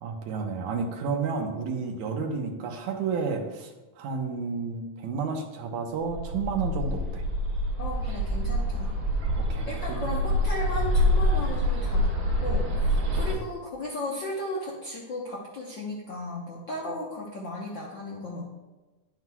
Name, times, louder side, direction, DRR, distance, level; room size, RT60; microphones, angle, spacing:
voice 1, 0.0-7.2 9.4-10.1 13.3-13.4, right 5 dB, 80° right, 3 dB, 2.3 m, -31 dB
Bird, 6.0-13.3, equal, 60° right, 2.6 m, -26 dB
voice 2, 7.8-8.9 9.7-12.1 12.4-18.5, left 1 dB, 65° left, -4 dB, 1.1 m, -35 dB
10.5 x 7.7 x 2.3 m, 1.1 s
omnidirectional pair, 3.4 m